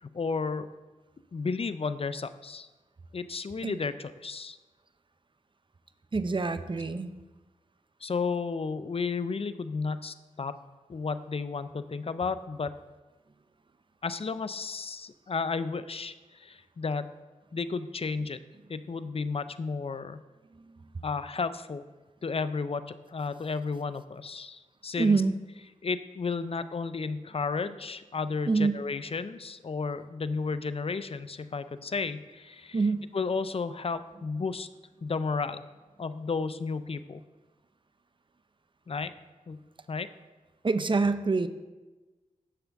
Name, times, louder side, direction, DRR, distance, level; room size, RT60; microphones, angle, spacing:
voice 1, 0.0-0.7 1.3-2.7 3.1-4.6 8.0-10.6 10.9-12.8 14.0-17.1 17.5-18.4 18.7-20.2 21.0-21.8 22.2-25.2 25.8-32.8 33.1-34.7 35.0-35.6 36.0-37.2 38.9-39.2 39.5-39.6 39.9-40.1, left 4 dB, 45° left, 13 dB, 0.5 m, -33 dB
voice 2, 6.1-7.1 25.0-25.3 28.5-28.8 32.7-33.1 40.6-41.5, right 4 dB, 35° right, 11 dB, 0.6 m, -26 dB
10.0 x 6.9 x 3.5 m, 1.2 s
cardioid pair, 50°, 14 cm